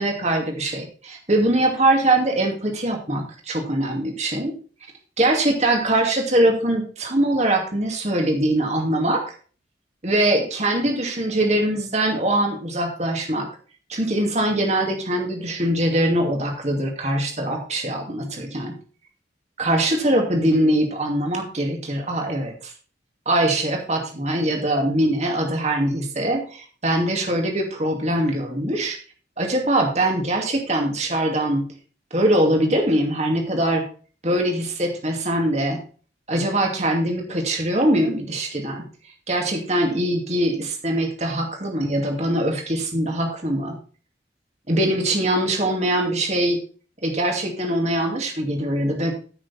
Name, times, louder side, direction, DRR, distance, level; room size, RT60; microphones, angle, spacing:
voice 1, 0.0-4.5 5.2-9.2 10.0-13.5 13.9-18.8 19.6-22.7 23.3-29.0 29.4-31.7 32.1-33.8 34.2-35.8 36.3-38.9 39.3-43.8 44.7-46.6 47.0-49.1, right 1 dB, 35° right, 2 dB, 2.5 m, -22 dB
14.5 x 6.4 x 4.2 m, 0.39 s
head